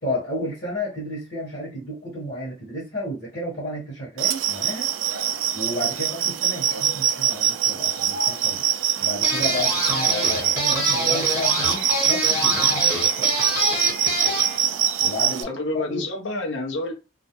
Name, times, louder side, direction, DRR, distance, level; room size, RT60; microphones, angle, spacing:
voice 1, 0.0-4.9 5.5-8.6 9.0-13.4 15.0-16.0, left 1 dB, 50° left, -8 dB, 1.1 m, -32 dB
sound 1, 4.2-15.4, right 9 dB, 85° right, 0.3 m, -23 dB
sound 2, 9.2-14.6, equal, 15° right, 1.0 m, -26 dB
voice 2, 15.4-16.9, left 2 dB, 70° left, 1 dB, 0.7 m, -29 dB
2.4 x 2.1 x 2.8 m, 0.30 s
head